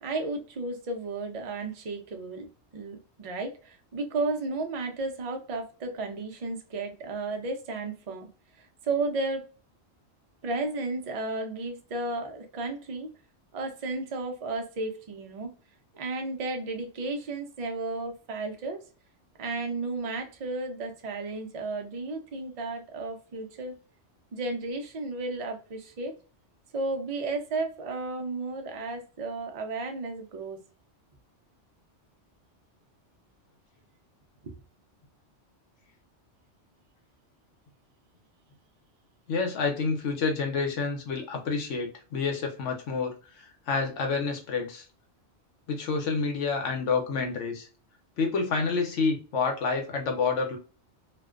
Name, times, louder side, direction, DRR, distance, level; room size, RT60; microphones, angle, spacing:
voice 1, 0.0-8.3 8.6-9.5 10.4-13.1 13.5-15.5 15.9-18.8 19.4-23.8 24.3-26.2 26.7-30.6 34.4-34.5, right 3 dB, 55° right, 0.4 m, -33 dB
voice 2, 39.3-44.9 45.7-47.7 48.2-50.6, left 4 dB, 80° left, 1.1 m, -28 dB
2.5 x 2.1 x 2.3 m
omnidirectional pair, 1.2 m